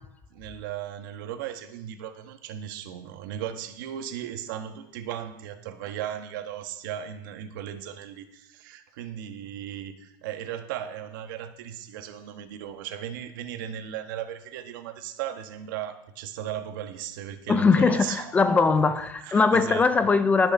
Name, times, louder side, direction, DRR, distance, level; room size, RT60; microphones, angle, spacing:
voice 1, 0.3-18.5 19.2-19.8, right 10 dB, 70° right, 8 dB, 1.4 m, -36 dB
voice 2, 17.5-20.5, left 4 dB, 15° left, 12 dB, 0.4 m, -21 dB
19.0 x 6.9 x 5.5 m, 0.88 s
supercardioid pair, 165°, 11 cm